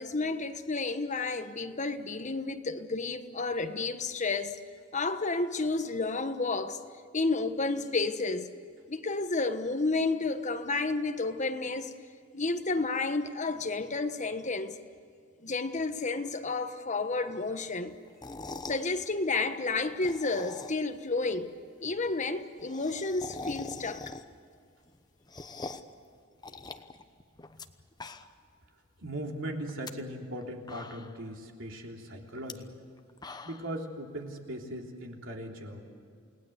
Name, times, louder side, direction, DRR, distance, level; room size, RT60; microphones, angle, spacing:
voice 1, 0.0-4.6 4.9-6.8 7.1-8.5 8.9-11.9 12.3-14.8 15.4-17.9 18.7-21.5 21.8-24.1, left 3 dB, 40° left, 1.3 m, -31 dB
sound 1, 18.1-18.9 19.8-21.0 21.3-21.4 21.6-21.7 21.9-22.0 22.3-24.5 24.9-26.0 26.4-27.7 27.9-28.5 28.9-29.0 29.6-29.9 30.4-30.5 30.7-31.3 32.4-32.5 33.0-33.8, left 3 dB, 20° left, 1.0 m, -43 dB
voice 2, 29.0-32.7 33.4-35.8, right 1 dB, 70° right, 3.4 m, -39 dB
29.0 x 19.0 x 8.1 m
head